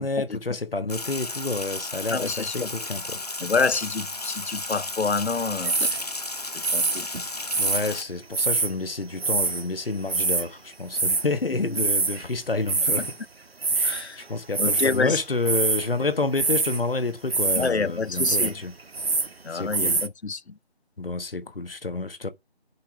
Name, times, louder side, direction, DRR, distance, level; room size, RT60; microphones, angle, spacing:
voice 1, 0.0-3.5 7.6-13.1 13.7-18.7 19.5-20.0 21.0-22.3, left 3 dB, 60° left, 1.2 m, -29 dB
Sink (filling or washing), 0.9-8.0, left 2 dB, 40° left, 1.0 m, -34 dB
voice 2, 2.1-2.7 3.4-5.9 6.5-7.1 11.5-11.8 13.0-13.1 13.8-14.2 14.6-15.2 17.6-18.6 19.4-20.5, left 4 dB, 85° left, 0.7 m, -28 dB
sound 1, 5.6-6.1 6.6-7.8 8.3-8.7 9.2-9.6 9.9-10.5 10.9-11.3 11.7-12.2 12.5-13.1 13.6-14.0 14.5-15.0 15.4-15.9 16.3-16.8 17.3-17.7 18.1-18.5 18.8-19.3 19.7-20.1, right 3 dB, 65° right, 0.9 m, -24 dB
10.0 x 5.1 x 3.3 m
figure-of-eight pair, 165°, 32 cm